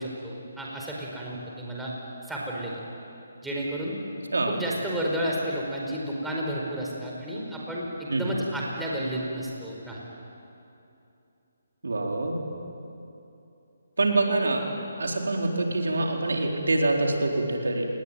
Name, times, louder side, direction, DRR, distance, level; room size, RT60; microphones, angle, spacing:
voice 1, 0.0-1.9 2.3-2.8 3.4-3.9 4.5-10.0, right 1 dB, 5° right, -4 dB, 4.9 m, -32 dB
voice 2, 11.8-12.4 14.0-14.6 15.0-17.8, right 2 dB, 80° right, 1 dB, 4.3 m, -25 dB
28.5 x 20.5 x 9.3 m, 2.8 s
hypercardioid pair, 155°, 0 cm